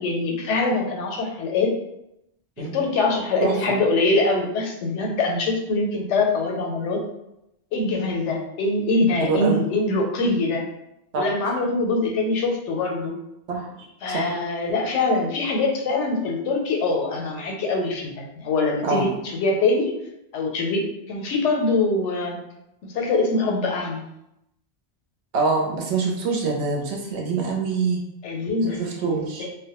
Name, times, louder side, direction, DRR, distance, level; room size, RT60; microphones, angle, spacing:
voice 1, 0.0-1.7 2.6-7.0 7.7-10.6 11.2-13.1 14.0-19.9 20.3-22.4 22.8-24.0 28.2-29.5, left 3 dB, 85° left, 1 dB, 0.9 m, -23 dB
voice 2, 9.2-9.6 11.1-11.3 13.5-14.4 18.8-19.1 25.3-28.0 28.6-29.5, right 4 dB, 75° right, 0 dB, 0.8 m, -25 dB
2.1 x 2.1 x 2.8 m, 0.84 s
omnidirectional pair, 1.2 m